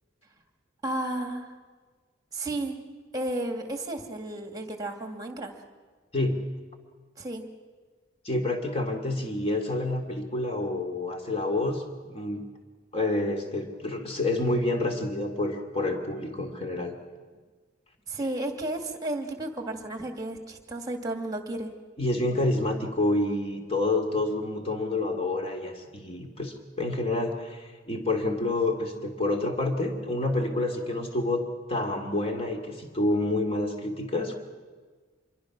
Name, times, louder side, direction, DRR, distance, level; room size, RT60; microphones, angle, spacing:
voice 1, 0.8-1.5 2.3-2.8 3.1-5.5 7.2-7.4 18.1-21.7, right 1 dB, 20° right, 5 dB, 2.2 m, -33 dB
voice 2, 8.2-11.8 12.1-12.5 12.9-17.0 22.0-31.4 31.7-34.4, left 2 dB, 30° left, 4 dB, 2.5 m, -28 dB
27.0 x 22.5 x 6.1 m, 1.5 s
head